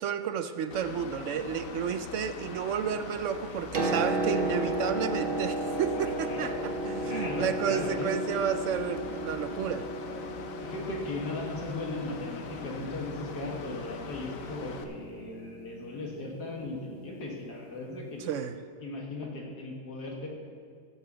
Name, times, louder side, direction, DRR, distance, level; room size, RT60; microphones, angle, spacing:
voice 1, 0.0-9.9 18.2-18.6, right 8 dB, 65° right, 10 dB, 0.8 m, -31 dB
Mechanical fan, 0.7-14.8, left 6 dB, 65° left, 1.1 m, -43 dB
Piano, 3.5-17.2 18.3-18.4, right 1 dB, 40° right, 1.0 m, -35 dB
voice 2, 5.9-8.2 10.6-18.4 18.8-20.3, left 2 dB, 80° left, -1 dB, 2.4 m, -38 dB
16.0 x 5.6 x 6.8 m, 2.2 s
omnidirectional pair, 1.7 m